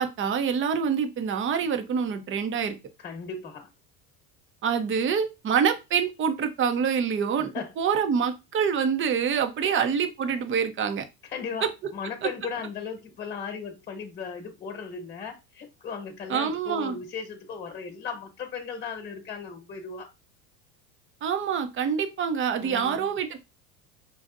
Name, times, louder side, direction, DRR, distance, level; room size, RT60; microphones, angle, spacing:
voice 1, 0.0-2.8 4.6-11.1 16.3-17.0 21.2-23.4, right 7 dB, 25° right, 0.6 m, -26 dB
voice 2, 3.0-3.7 7.5-7.7 9.6-9.8 11.2-11.6 11.9-20.1 22.6-23.1, left 6 dB, 20° left, 1.1 m, -36 dB
5.3 x 2.4 x 2.5 m
hypercardioid pair, 85°, 48 cm